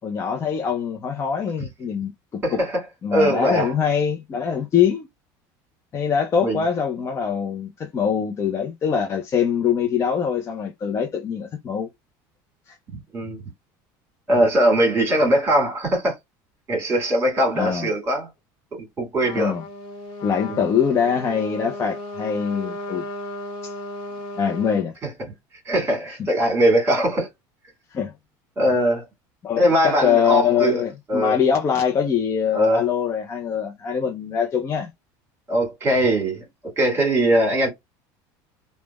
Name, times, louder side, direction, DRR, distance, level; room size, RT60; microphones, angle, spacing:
voice 1, 0.0-2.6 3.0-5.1 5.9-11.9 12.7-12.8 17.6-17.9 19.3-19.6 20.2-23.0 23.6-23.7 24.4-24.9 27.9-28.1 29.4-34.9, left 7 dB, 30° left, 0.5 m, -23 dB
voice 2, 2.4-2.8 3.1-3.7 6.4-6.6 12.9-13.4 14.3-16.1 16.7-18.3 18.7-19.5 20.5-20.6 25.7-27.3 28.6-29.1 29.6-30.8 31.1-31.4 32.5-32.9 35.5-36.4 36.8-37.7, right 1 dB, 25° right, 1.7 m, -21 dB
Trumpet, 19.2-24.9, left 1 dB, 60° left, 0.9 m, -35 dB
3.2 x 2.1 x 2.2 m
supercardioid pair, 125°, 10 cm